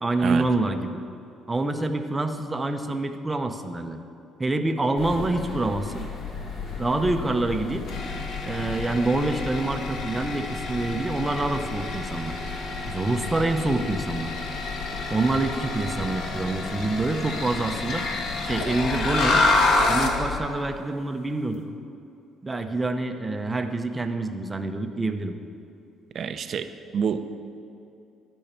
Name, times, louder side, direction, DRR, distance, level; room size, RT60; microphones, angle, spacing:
voice 1, 0.0-1.0 1.5-4.0 4.4-6.1 6.8-7.9 8.4-12.4 12.9-14.3 15.1-18.0 18.4-19.4 19.9-21.7 22.4-25.4, right 2 dB, 15° right, 6 dB, 0.8 m, -26 dB
Mansion House - Guildhall Clock Museum, 5.0-20.4, left 4 dB, 50° left, 1.8 m, -36 dB
sound 1, 7.9-20.2, left 3 dB, 70° left, 1.5 m, -28 dB
voice 2, 26.1-26.7 26.9-27.3, right 7 dB, 50° right, 9 dB, 0.7 m, -27 dB
12.0 x 5.6 x 8.9 m, 2.6 s
cardioid pair, 110°, 0 cm